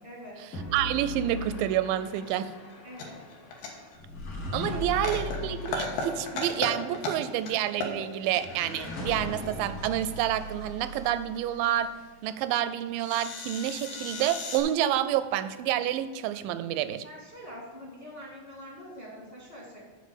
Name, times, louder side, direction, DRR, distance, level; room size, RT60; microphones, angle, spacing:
voice 1, 0.0-0.4 2.8-3.2 4.9-5.0 17.0-19.8, equal, 20° left, -4 dB, 1.1 m, -44 dB
sound 1, 0.5-11.8, left 1 dB, 55° left, 1.7 m, -39 dB
voice 2, 0.7-2.5 4.5-11.9 12.2-17.0, right 11 dB, 85° right, 12 dB, 2.2 m, -28 dB
sound 2, 2.3-2.4 2.6-4.0 4.2-4.3 4.8-5.4 5.7-6.7 6.9-7.5 7.8-8.4 10.2-10.5 11.7-11.8 12.0-12.1 12.6-12.7 13.0-14.6, left 3 dB, 90° left, 3.0 m, -35 dB
7.3 x 5.1 x 7.2 m, 1.4 s
omnidirectional pair, 3.9 m